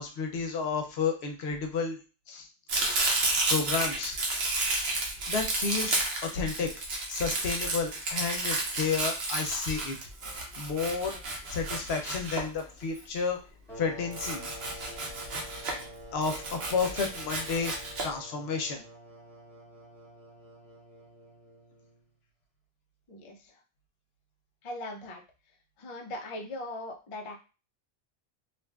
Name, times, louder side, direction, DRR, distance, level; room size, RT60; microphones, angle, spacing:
voice 1, 0.0-2.0 2.3-2.5 3.5-4.2 5.3-6.8 7.1-10.0 10.3-11.2 11.5-13.4 13.8-14.9 16.1-17.7 18.0-18.8, left 5 dB, 85° left, 3 dB, 0.9 m, -31 dB
Domestic sounds home sounds, 2.7-13.0 14.1-15.9 16.2-18.1, right 2 dB, 85° right, 1.0 m, -31 dB
sound 1, 13.7-22.1, equal, ahead, 1.0 m, -48 dB
voice 2, 23.1-23.6 24.6-25.2 25.8-27.4, left 1 dB, 45° left, 2 dB, 0.4 m, -40 dB
2.8 x 2.4 x 2.2 m, 0.33 s
omnidirectional pair, 1.0 m